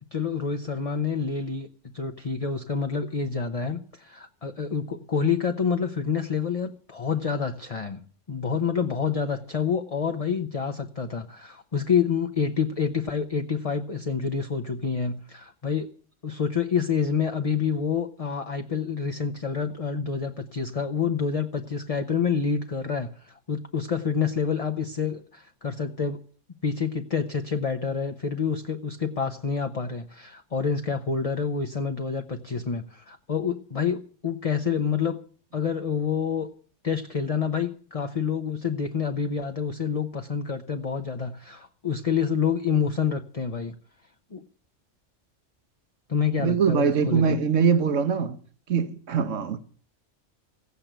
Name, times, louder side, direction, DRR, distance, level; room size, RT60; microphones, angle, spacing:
voice 1, 0.1-8.0 8.3-15.9 16.2-26.2 26.6-35.2 35.5-36.5 36.8-43.7 44.3-44.4 46.1-47.4, left 6 dB, 30° left, 0.9 m, -28 dB
voice 2, 46.4-48.4 48.7-49.6, right 6 dB, 80° right, 1.4 m, -22 dB
16.5 x 8.2 x 9.0 m
omnidirectional pair, 1.3 m